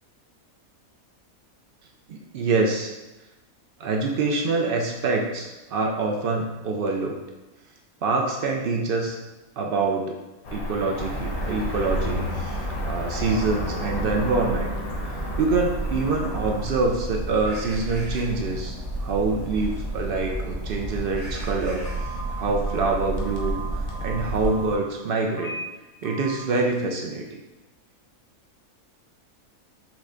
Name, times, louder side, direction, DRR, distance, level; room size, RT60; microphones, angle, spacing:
voice 1, 2.1-2.9 3.8-7.2 8.0-9.2 9.6-10.1 10.5-14.7 15.4-18.7 19.0-23.6 24.0-25.5 26.0-27.4, right 3 dB, 80° right, 1 dB, 0.5 m, -25 dB
Cricket / Motor vehicle (road), 10.4-16.7, left 1 dB, 80° left, 1.3 m, -33 dB
sound 1, 11.0-24.8, right 2 dB, 55° right, 1.8 m, -31 dB
Telephone, 21.9-24.8 25.3-25.6 26.0-26.4, right 3 dB, 40° left, 0.5 m, -37 dB
5.8 x 2.2 x 3.7 m, 1.1 s
omnidirectional pair, 1.5 m